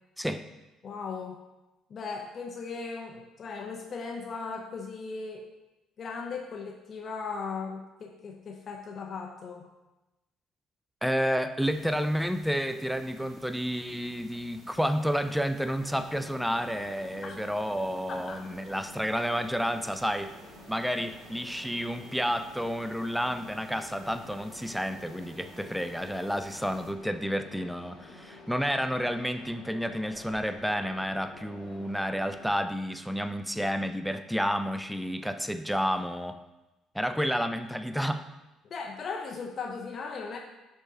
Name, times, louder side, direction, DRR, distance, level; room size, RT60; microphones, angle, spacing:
voice 1, 0.8-1.4 1.9-5.5 6.0-9.7 17.2-17.4 18.1-18.4 38.7-40.4, left 4 dB, 45° left, 2 dB, 0.6 m, -37 dB
voice 2, 11.0-20.3 20.7-36.4 36.9-38.2, equal, ahead, 9 dB, 0.3 m, -30 dB
sound 1, 11.6-26.9, right 4 dB, 40° right, 0.8 m, -54 dB
Mechanisms, 15.8-32.5, left 2 dB, 65° left, 1.8 m, -50 dB
5.9 x 5.2 x 3.7 m, 1.0 s
cardioid pair, 115°, 0 cm